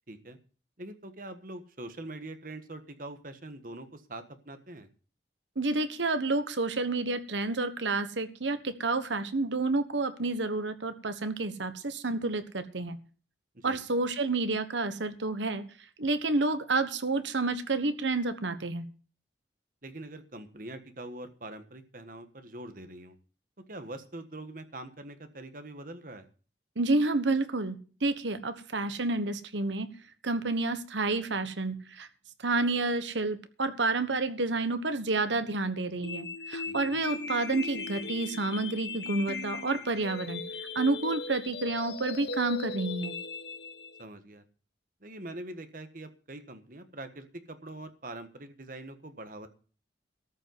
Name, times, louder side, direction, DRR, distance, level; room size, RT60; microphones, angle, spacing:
voice 1, 0.1-0.4 0.8-4.9 13.5-13.8 19.8-23.2 23.7-26.3 36.7-37.0 44.0-44.4 45.0-49.5, right 1 dB, 45° right, 9 dB, 1.5 m, -43 dB
voice 2, 5.6-13.0 13.6-15.6 16.0-18.9 26.8-29.9 30.2-32.1 32.4-40.4 40.7-43.1, right 3 dB, 80° right, 11 dB, 1.3 m, -29 dB
sound 1, 36.0-44.0, left 3 dB, 65° left, 1.3 m, -38 dB
13.5 x 5.4 x 9.4 m, 0.38 s
head